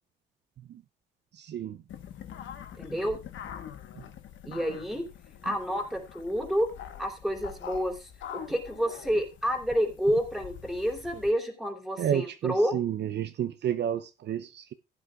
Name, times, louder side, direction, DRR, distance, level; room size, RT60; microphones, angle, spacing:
voice 1, 1.3-1.8 4.0-4.1 4.5-4.8 5.5-5.6 12.0-14.7, right 10 dB, 60° right, 0.6 m, -31 dB
sound 1, 1.9-11.3, left 8 dB, 75° left, 1.3 m, -44 dB
voice 2, 2.8-3.2 4.4-5.0 5.4-6.7 7.0-12.7, equal, ahead, 3.1 m, -29 dB
15.5 x 9.4 x 2.4 m
cardioid pair, 90°, 20 cm